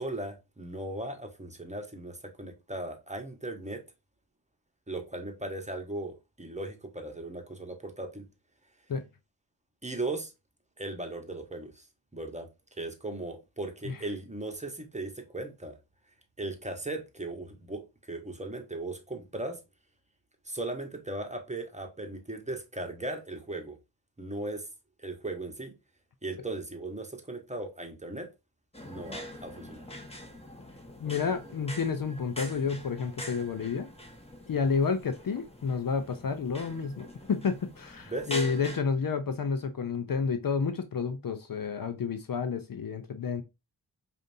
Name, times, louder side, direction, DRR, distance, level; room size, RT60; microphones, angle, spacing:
voice 1, 0.0-3.8 4.9-8.3 9.8-10.3 10.8-11.9 12.1-12.5 12.8-15.7 16.4-19.6 20.4-23.8 24.2-24.7 25.0-25.7 26.2-28.3 28.9-29.8 38.0-38.3, right 2 dB, 15° right, 1.1 m, -37 dB
sound 1, 28.7-38.8, equal, 15° left, 1.3 m, -44 dB
voice 2, 31.0-33.9 34.5-43.4, left 5 dB, 50° left, 0.6 m, -30 dB
5.0 x 2.6 x 2.6 m
cardioid pair, 45°, 45 cm